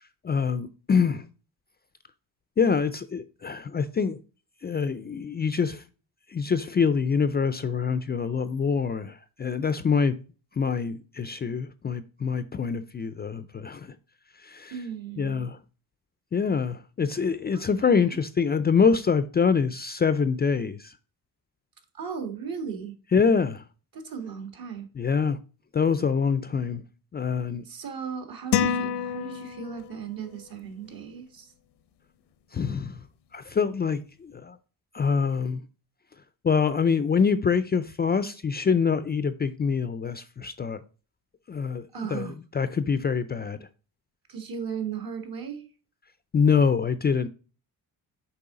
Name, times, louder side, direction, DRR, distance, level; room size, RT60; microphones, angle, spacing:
voice 1, 0.2-1.2 2.6-4.2 4.6-5.8 6.3-10.2 10.5-14.0 14.4-14.7 15.2-15.6 16.3-21.0 23.1-23.6 24.9-25.4 25.7-26.8 27.1-27.6 32.5-33.0 33.3-34.6 34.9-35.6 36.4-40.8 41.5-41.8 42.1-43.6 46.3-47.3, left 6 dB, 25° left, 0.4 m, -25 dB
voice 2, 14.7-15.5 17.5-17.6 21.9-23.0 23.9-24.9 27.7-31.5 41.9-42.4 44.3-45.6, right 6 dB, 60° right, 1.7 m, -36 dB
sound 1, 28.5-30.0, left 8 dB, 80° left, 0.7 m, -27 dB
6.9 x 4.6 x 3.7 m
cardioid pair, 115°, 40 cm